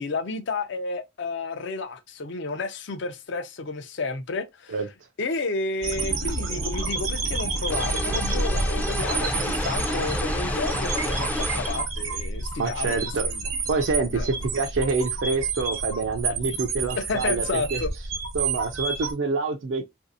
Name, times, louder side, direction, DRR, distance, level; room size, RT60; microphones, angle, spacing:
voice 1, 0.0-4.8 5.2-13.4 14.1-14.3 17.0-17.9, left 3 dB, 60° left, 0.5 m, -31 dB
sound 1, 5.8-19.1, right 3 dB, 80° right, 0.8 m, -29 dB
sound 2, 6.1-7.0 7.3-11.7, right 1 dB, 45° left, 1.1 m, -42 dB
sound 3, 7.7-11.8, left 1 dB, 5° left, 0.4 m, -30 dB
voice 2, 12.6-13.3 13.7-17.8 18.3-19.9, right 4 dB, 60° right, 0.4 m, -27 dB
3.2 x 2.6 x 2.5 m
head